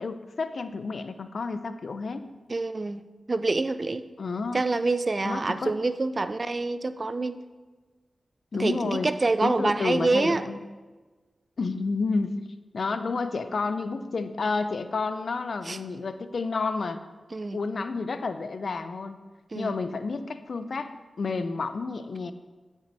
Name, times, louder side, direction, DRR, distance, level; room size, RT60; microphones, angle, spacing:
voice 1, 0.0-2.3 4.2-4.6 5.2-5.8 8.5-9.1 9.4-10.6 11.6-12.4 12.7-17.0 17.5-19.2 19.5-20.9 21.2-22.3, left 4 dB, 70° left, 11 dB, 0.5 m, -30 dB
voice 2, 2.5-3.0 3.3-4.0 4.5-7.4 8.5-10.4 15.7-15.8 17.3-17.6 19.5-19.8, right 3 dB, 50° right, 13 dB, 0.4 m, -26 dB
8.7 x 6.2 x 4.1 m, 1.3 s
cardioid pair, 40°, 0 cm